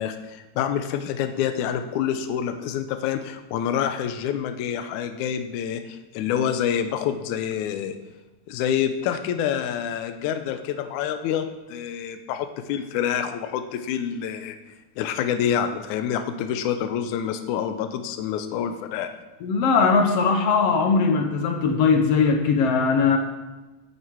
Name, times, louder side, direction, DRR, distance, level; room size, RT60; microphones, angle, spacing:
voice 1, 0.0-8.0 8.5-14.6 15.0-19.1, left 9 dB, 85° left, 8 dB, 2.1 m, -27 dB
voice 2, 19.4-23.2, left 5 dB, 65° left, 5 dB, 1.7 m, -20 dB
10.5 x 8.5 x 4.6 m, 1.1 s
omnidirectional pair, 3.5 m